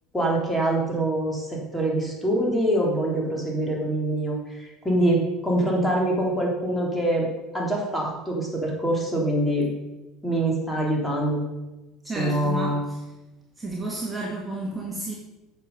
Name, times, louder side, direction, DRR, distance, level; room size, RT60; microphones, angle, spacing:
voice 1, 0.1-7.3 7.5-9.7 10.2-11.4 12.1-12.8, right 1 dB, 10° left, -2 dB, 3.6 m, -24 dB
voice 2, 12.0-13.0 13.6-15.1, right 2 dB, 15° right, -2 dB, 2.2 m, -32 dB
9.3 x 7.1 x 5.5 m, 1.0 s
hypercardioid pair, 80°, 0 cm